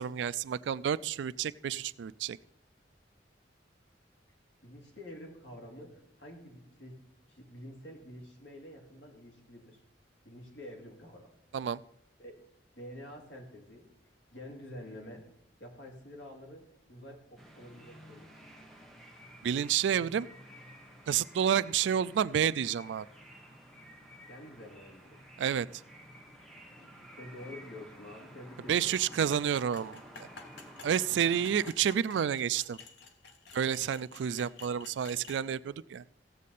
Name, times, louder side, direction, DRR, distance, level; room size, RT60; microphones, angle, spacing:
voice 1, 0.0-2.4 11.5-11.8 19.4-20.3 21.1-23.1 25.4-25.7 28.7-30.0 30.8-32.8 33.5-36.0, right 8 dB, 75° right, 19 dB, 0.3 m, -30 dB
voice 2, 4.6-7.0 7.3-9.8 10.2-11.3 12.2-12.4 12.7-15.3 15.6-18.3 24.1-25.2 26.7-29.2 35.2-35.4, left 1 dB, 70° left, 1 dB, 2.6 m, -48 dB
sound 1, 17.4-31.7, equal, ahead, 1.2 m, -52 dB
sound 2, 28.7-35.4, left 4 dB, 85° left, 1.2 m, -52 dB
16.0 x 7.4 x 4.1 m, 0.78 s
head